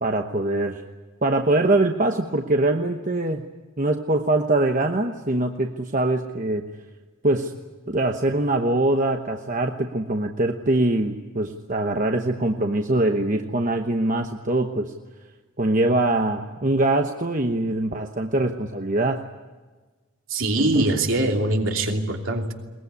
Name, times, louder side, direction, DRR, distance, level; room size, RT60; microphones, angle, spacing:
voice 1, 0.0-0.8 1.2-3.4 3.8-6.7 7.2-7.5 7.9-14.9 15.6-19.2 20.6-20.8, right 2 dB, 35° right, 4 dB, 1.0 m, -23 dB
voice 2, 20.3-22.5, right 2 dB, 65° right, 2 dB, 2.9 m, -23 dB
22.0 x 20.5 x 9.6 m, 1.3 s
head